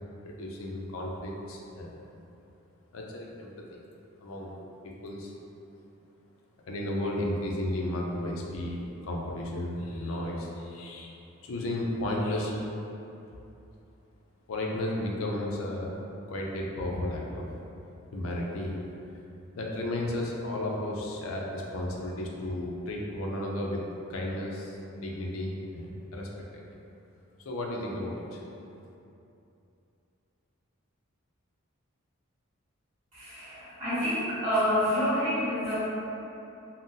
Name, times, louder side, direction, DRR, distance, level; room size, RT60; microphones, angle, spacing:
voice 1, 0.2-1.9 2.9-3.6 4.2-4.6 4.8-5.3 6.7-11.1 11.4-12.6 14.5-16.0 16.3-17.5 18.1-18.8 19.5-23.8 24.1-26.8 27.4-28.4, left 1 dB, 75° left, -1 dB, 0.4 m, -33 dB
voice 2, 33.1-35.7, equal, 35° right, -14 dB, 1.2 m, -28 dB
3.7 x 2.0 x 2.6 m, 2.8 s
head